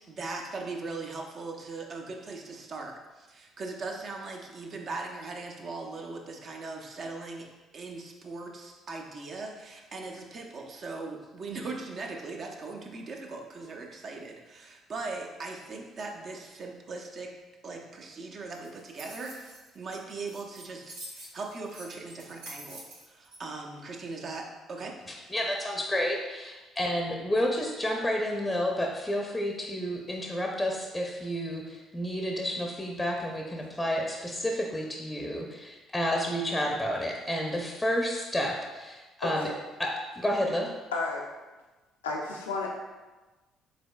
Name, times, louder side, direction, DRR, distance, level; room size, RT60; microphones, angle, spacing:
voice 1, 0.0-7.5 7.7-17.3 17.6-25.0, right 3 dB, 45° right, 1 dB, 0.7 m, -39 dB
sound 1, 18.5-23.4, right 1 dB, 80° right, 0.9 m, -46 dB
voice 2, 25.3-39.5 39.8-39.9 40.2-40.7, equal, 10° left, 0 dB, 0.6 m, -30 dB
voice 3, 39.2-39.5 40.9-41.2 42.0-42.7, left 3 dB, 85° left, -1 dB, 0.5 m, -32 dB
5.1 x 3.7 x 2.3 m, 1.2 s
figure-of-eight pair, 50°, 0 cm